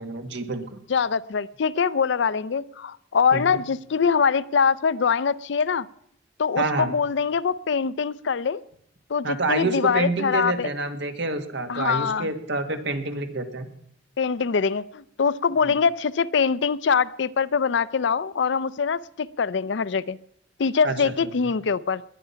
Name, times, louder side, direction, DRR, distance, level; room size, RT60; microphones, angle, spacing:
voice 1, 0.0-0.8 3.3-3.4 6.6-6.9 9.2-13.7 15.6-15.7 20.8-20.9, right 3 dB, 65° right, 6 dB, 1.8 m, -27 dB
voice 2, 0.9-5.9 6.4-8.6 9.1-10.7 11.7-12.3 14.2-20.2 20.6-22.0, left 6 dB, 65° left, 18 dB, 0.5 m, -23 dB
20.0 x 10.0 x 5.7 m, 0.72 s
head